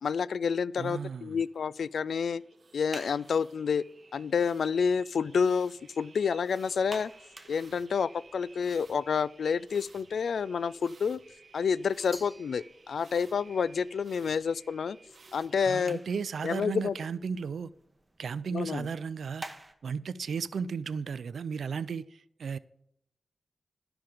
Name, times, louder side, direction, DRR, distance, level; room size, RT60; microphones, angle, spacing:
voice 1, 0.0-2.4 2.7-3.8 4.1-7.1 7.5-11.2 11.5-15.0 15.3-16.0 16.4-16.9 18.5-18.9, left 6 dB, 85° left, 0.3 m, -29 dB
voice 2, 0.8-1.4 15.6-17.7 18.2-19.4 19.8-22.6, right 6 dB, 85° right, 0.4 m, -35 dB
sound 1, 1.1-15.9, right 4 dB, 55° right, 0.9 m, -57 dB
sound 2, 2.6-19.7, right 1 dB, 15° right, 1.0 m, -53 dB
Glass, 12.1-13.3, left 1 dB, 10° left, 0.8 m, -49 dB
12.5 x 5.9 x 5.0 m
wide cardioid pair, 135°, 0 cm